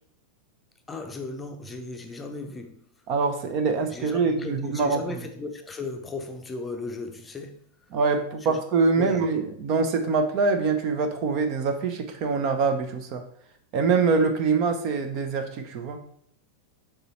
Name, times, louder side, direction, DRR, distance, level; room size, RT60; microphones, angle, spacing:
voice 1, 0.9-2.7 3.9-7.6 8.4-8.6 9.0-9.3, left 3 dB, 15° left, 4 dB, 0.7 m, -36 dB
voice 2, 3.1-5.0 7.9-13.2 13.7-16.0, right 4 dB, 40° right, 7 dB, 0.8 m, -24 dB
6.7 x 3.8 x 4.3 m, 0.66 s
figure-of-eight pair, 90°, 0 cm